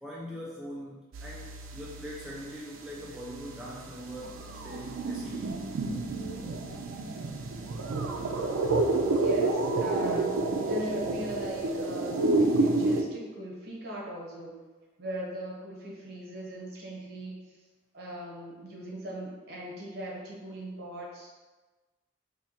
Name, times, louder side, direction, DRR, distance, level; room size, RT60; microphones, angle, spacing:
voice 1, 0.0-5.6, equal, 5° right, -6 dB, 0.3 m, -42 dB
sound 1, 1.1-2.6 3.0-13.0, right 2 dB, 85° right, 0.4 m, -30 dB
voice 2, 9.2-14.6 15.0-17.4 17.9-21.3, equal, 50° right, -4 dB, 0.9 m, -40 dB
4.4 x 2.7 x 2.8 m, 1.3 s
head